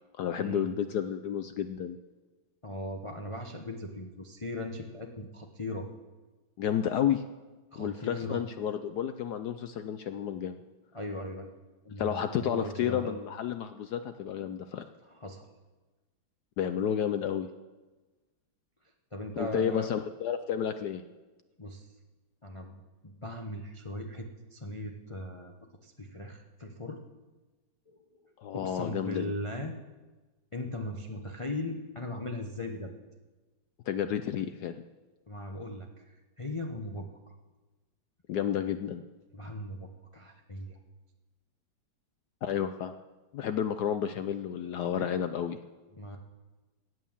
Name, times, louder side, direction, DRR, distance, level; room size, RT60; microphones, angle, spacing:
voice 1, 0.2-2.0 6.6-7.2 7.8-10.6 12.0-14.8 16.6-17.5 19.4-21.0 28.4-29.3 33.9-34.8 38.3-39.0 42.4-42.9 43.3-45.6, left 9 dB, 75° left, 9 dB, 0.9 m, -31 dB
voice 2, 2.6-5.9 7.7-8.4 10.9-11.5 11.8-13.2 15.0-15.5 19.1-19.9 21.6-21.9 22.4-25.5 25.8-27.0 27.9-28.0 28.2-29.8 30.5-32.9 35.3-37.3 39.3-40.8 45.9-46.2, left 1 dB, 55° left, 2 dB, 0.3 m, -39 dB
15.5 x 9.2 x 7.2 m, 1.2 s
omnidirectional pair, 2.3 m